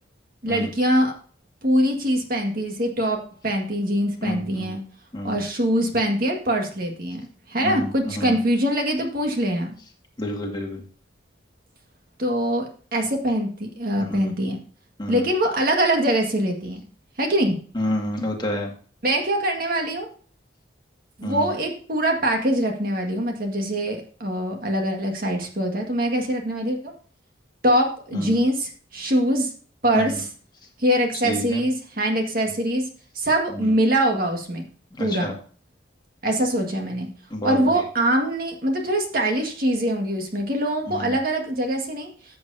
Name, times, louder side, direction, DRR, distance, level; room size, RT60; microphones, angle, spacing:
voice 1, 0.4-1.1 1.6-4.8 5.2-9.7 12.2-14.6 15.1-16.8 17.2-17.6 19.0-20.1 21.2-26.9 27.6-29.5 29.8-30.3 30.8-32.8 33.2-34.7 35.0-35.3 36.2-37.1 37.4-42.1, right 1 dB, 50° right, 3 dB, 1.8 m, -23 dB
voice 2, 4.2-4.7 5.1-5.4 7.6-7.9 8.2-8.4 10.2-10.8 14.1-14.3 15.0-15.2 17.8-18.7 21.2-21.5 28.1-28.3 29.9-30.0 31.2-31.6 35.0-35.3 37.3-37.6 40.9-41.1, left 1 dB, 25° left, 0 dB, 2.0 m, -29 dB
14.0 x 7.8 x 2.8 m, 0.43 s
head